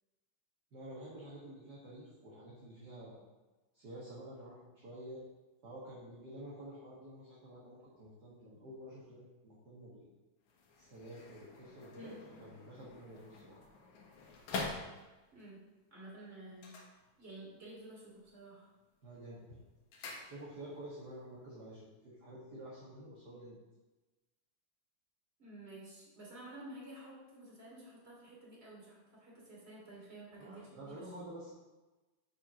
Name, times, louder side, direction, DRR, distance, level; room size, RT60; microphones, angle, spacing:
voice 1, 0.7-3.2 3.7-5.2 5.6-10.1 10.8-12.1 12.4-13.7 19.0-19.6 20.2-23.6 30.4-31.5, right 1 dB, 45° right, -7 dB, 1.7 m, -50 dB
sound 1, 10.4-15.4 16.5-17.6 17.9-18.4 18.8-20.8 21.1-21.2, left 3 dB, 85° left, 2.6 m, -46 dB
voice 2, 15.9-16.7 17.2-18.7 25.4-31.1, right 1 dB, 20° right, -5 dB, 2.7 m, -51 dB
7.5 x 4.9 x 6.1 m, 1.1 s
omnidirectional pair, 3.4 m